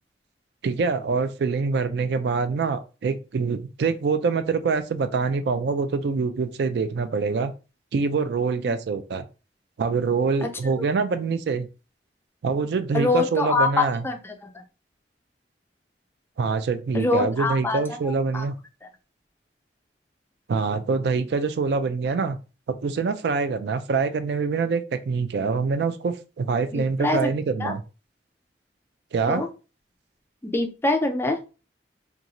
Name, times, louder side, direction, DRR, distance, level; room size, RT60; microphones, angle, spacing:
voice 1, 0.6-7.5 7.9-9.3 9.8-11.7 12.4-14.0 16.4-18.6 20.5-22.4 22.7-27.8 29.1-29.5, right 4 dB, 65° right, 10 dB, 0.3 m, -25 dB
voice 2, 10.4-10.9 12.9-14.3 16.9-18.5 26.7-27.3 27.6-27.7 29.3-29.5 30.4-31.4, left 3 dB, 15° left, 3 dB, 0.3 m, -25 dB
2.5 x 2.3 x 2.8 m, 0.32 s
head